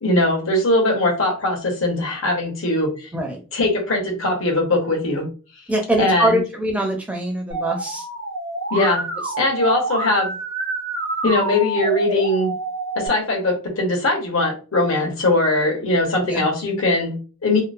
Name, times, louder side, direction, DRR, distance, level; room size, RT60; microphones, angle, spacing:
voice 1, 0.0-3.1 3.5-5.3 6.0-6.4 8.7-9.1 9.4-10.3 11.2-12.5 13.0-17.6, left 2 dB, 70° left, 1 dB, 1.0 m, -20 dB
voice 2, 5.7-8.0 11.2-11.3 16.3-16.4, right 1 dB, 5° right, 2 dB, 0.4 m, -22 dB
Musical instrument, 7.5-13.1, right 2 dB, 55° right, 0.6 m, -27 dB
2.8 x 2.0 x 2.5 m, 0.34 s
head